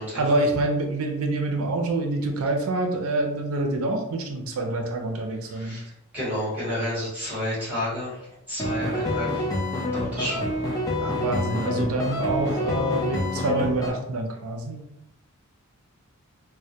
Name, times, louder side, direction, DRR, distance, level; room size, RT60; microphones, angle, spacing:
voice 1, 0.1-5.8 11.0-14.8, right 2 dB, 70° right, 3 dB, 0.4 m, -26 dB
voice 2, 5.5-5.9 6.1-9.5 9.9-10.5, equal, 5° right, -9 dB, 1.0 m, -30 dB
sound 1, 8.6-13.9, left 1 dB, 15° left, 0.3 m, -27 dB
2.1 x 2.1 x 2.7 m, 0.80 s
head